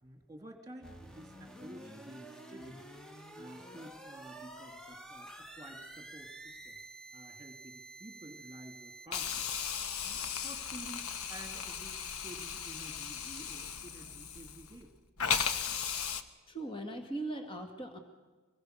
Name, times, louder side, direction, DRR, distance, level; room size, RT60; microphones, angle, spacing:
voice 1, 0.0-3.0 3.4-6.8 7.1-9.5 10.0-14.9, right 1 dB, 15° right, 5 dB, 2.5 m, -51 dB
sound 1, 0.8-9.1, right 1 dB, 5° left, 1.1 m, -50 dB
Hiss, 9.1-14.8 15.2-16.2, left 7 dB, 85° left, 1.2 m, -36 dB
voice 2, 16.5-18.0, right 2 dB, 25° left, 5 dB, 1.9 m, -39 dB
24.5 x 21.0 x 6.6 m, 1.3 s
head